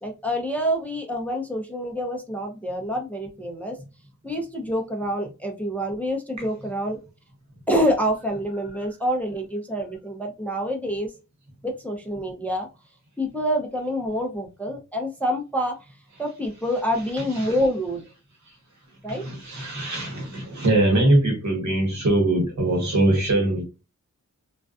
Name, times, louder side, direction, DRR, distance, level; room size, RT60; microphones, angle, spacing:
voice 1, 0.0-3.8 4.2-7.0 7.7-11.1 11.6-12.7 13.2-15.7 16.2-18.0 19.0-19.2, equal, 5° left, 0.5 m, -27 dB
voice 2, 17.2-17.5 19.1-23.6, right 1 dB, 65° right, 1.0 m, -22 dB
2.4 x 2.2 x 2.3 m
wide cardioid pair, 120°, 31 cm